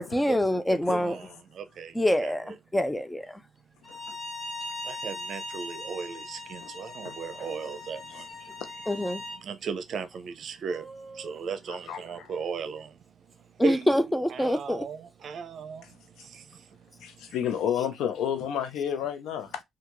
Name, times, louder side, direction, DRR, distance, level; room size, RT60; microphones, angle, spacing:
voice 1, 0.0-1.2 1.9-3.4 8.9-9.2 13.6-14.8, left 1 dB, 10° left, 0.5 m, -26 dB
voice 2, 0.9-1.3 1.6-1.9 2.2-2.6 4.9-8.2 9.4-10.8 11.2-12.9 13.6-15.8, right 5 dB, 60° right, 0.6 m, -36 dB
Bowed string instrument, 3.8-9.4, left 1 dB, 25° left, 1.6 m, -39 dB
voice 3, 7.0-7.5 8.1-8.2 8.6-8.7 11.7-12.3 15.8-15.9 17.0-19.6, left 9 dB, 85° left, 0.6 m, -32 dB
sound 1, 8.3-8.6 10.7-12.3, right 3 dB, 10° right, 1.7 m, -49 dB
3.5 x 2.3 x 3.0 m
cardioid pair, 90°, 0 cm